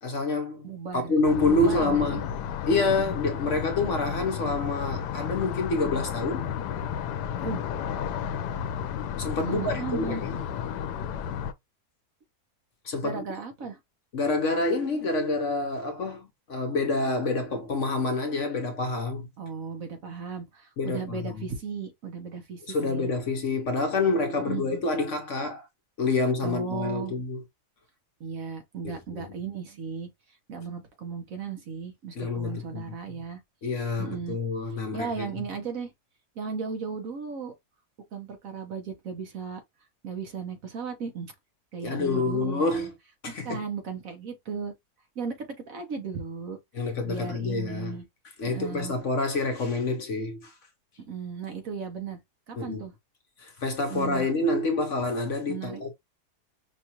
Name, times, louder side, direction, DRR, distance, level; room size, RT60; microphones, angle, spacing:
voice 1, 0.0-0.7 1.0-2.3 2.6-6.5 9.2-10.4 12.8-13.2 14.1-19.3 20.8-21.4 22.7-25.6 26.0-27.4 28.8-29.3 32.2-32.8 33.6-35.3 41.8-42.9 43.2-43.6 46.7-48.0 48.4-50.5 52.6-52.8 53.4-55.9, left 3 dB, 55° left, 1.1 m, -27 dB
voice 2, 0.6-1.1 1.5-2.2 7.4-7.6 9.4-10.2 13.0-13.8 19.4-23.1 24.4-24.8 26.4-27.2 28.2-30.1 30.5-33.4 34.0-34.4 34.9-35.9 36.4-37.5 38.1-39.6 40.0-41.3 41.7-42.9 43.3-44.7 45.2-46.6 46.8-48.0 48.4-48.9 51.1-52.2 52.5-52.9 53.9-54.3 55.5-55.9, right 5 dB, 60° right, 1.2 m, -36 dB
sound 1, 1.3-11.5, left 8 dB, 85° left, 1.2 m, -32 dB
5.4 x 2.4 x 2.9 m
omnidirectional pair, 1.7 m